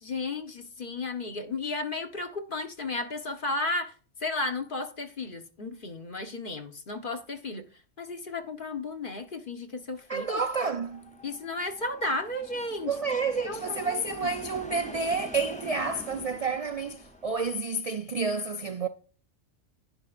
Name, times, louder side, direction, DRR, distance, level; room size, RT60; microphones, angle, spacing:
voice 1, 0.0-3.9 4.2-7.7 8.0-10.4 11.2-12.9 13.5-14.4, left 2 dB, 40° left, 1.3 m, -34 dB
sound 1, 10.1-17.5, left 1 dB, 5° left, 0.7 m, -46 dB
voice 2, 10.1-11.2 12.8-18.9, right 4 dB, 55° right, 0.4 m, -30 dB
10.5 x 9.9 x 2.5 m
omnidirectional pair, 1.4 m